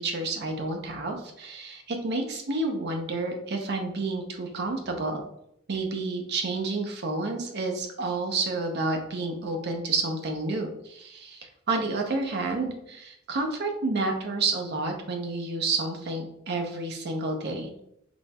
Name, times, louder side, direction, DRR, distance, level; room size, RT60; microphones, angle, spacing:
voice 1, 0.0-5.2 5.7-17.8, right 3 dB, 55° right, 3 dB, 0.6 m, -30 dB
4.3 x 3.2 x 2.2 m, 0.77 s
head